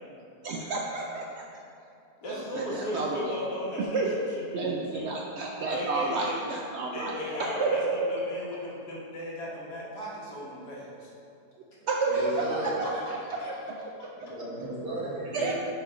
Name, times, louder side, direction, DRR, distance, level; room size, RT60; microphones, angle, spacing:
voice 1, 0.4-1.4 2.3-3.3 3.9-4.1 4.5-7.1 7.4-8.1 11.8-12.3 12.6-13.0 13.3-13.8 15.3-15.5, right 3 dB, 90° right, -1 dB, 0.6 m, -30 dB
voice 2, 2.2-4.1 4.4-5.1 5.7-6.4 6.9-11.1 12.6-13.0 13.4-13.5 15.4-15.5, equal, 75° left, -6 dB, 1.9 m, -36 dB
voice 3, 12.1-12.8 14.1-15.5, right 1 dB, 60° right, -8 dB, 2.1 m, -35 dB
6.7 x 3.9 x 4.9 m, 2.5 s
omnidirectional pair, 1.7 m